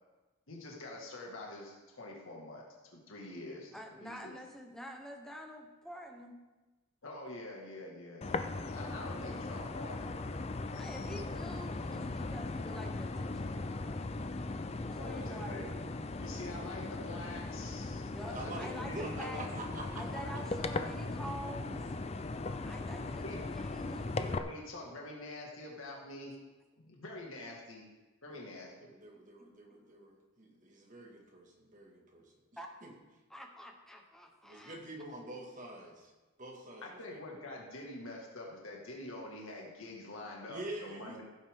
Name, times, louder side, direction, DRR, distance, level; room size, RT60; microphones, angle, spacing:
voice 1, 0.5-2.7 2.9-3.7 4.0-4.3 7.0-10.5 15.0-15.7 16.2-19.4 23.2-23.4 24.2-26.4 26.8-27.9 28.2-28.9 36.8-41.2, left 2 dB, 75° left, -2 dB, 2.0 m, -46 dB
voice 2, 3.7-6.4 10.8-15.9 18.1-19.5 19.9-21.9 22.6-24.1 29.4-29.5 32.6-32.7 33.3-34.8, equal, ahead, 2 dB, 1.1 m, -47 dB
sound 1, 8.2-24.4, left 3 dB, 30° left, 0.5 m, -38 dB
voice 3, 18.3-20.0 28.3-28.5 28.8-32.3 32.8-32.9 34.4-36.1 36.4-37.0 40.5-41.2, right 1 dB, 35° right, -1 dB, 2.0 m, -46 dB
15.5 x 8.3 x 3.7 m, 1.2 s
head